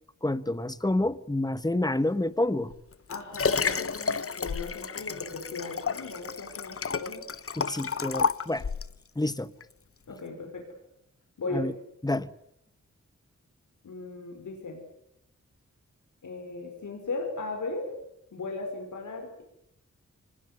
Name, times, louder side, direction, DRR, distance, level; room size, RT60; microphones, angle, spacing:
voice 1, 0.2-2.7 7.6-8.7 9.1-9.5 11.5-11.7 12.0-12.3, left 1 dB, 15° left, 1.3 m, -28 dB
Liquid, 2.7-9.0 9.6-9.7, left 6 dB, 50° left, 0.9 m, -31 dB
voice 2, 3.1-7.2 10.1-10.6 11.4-11.7 13.8-14.8 16.2-17.9 18.3-19.4, left 3 dB, 90° left, 5.1 m, -37 dB
24.5 x 20.0 x 9.6 m
cardioid pair, 65°, 29 cm